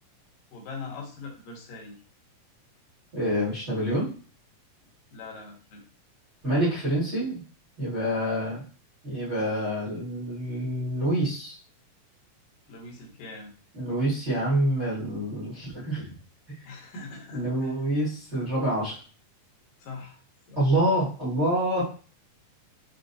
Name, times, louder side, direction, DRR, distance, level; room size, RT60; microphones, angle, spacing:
voice 1, 0.5-2.0 5.1-5.8 8.1-8.4 12.7-13.5 16.6-17.7 19.8-20.2 20.5-20.6, left 4 dB, 75° left, 0 dB, 2.5 m, -41 dB
voice 2, 3.1-4.1 6.4-7.4 7.8-8.6 9.0-11.6 13.7-16.1 16.6-16.7 17.3-19.0 20.5-21.8, right 1 dB, 45° right, -10 dB, 0.9 m, -27 dB
6.2 x 2.1 x 2.6 m, 0.38 s
omnidirectional pair, 4.1 m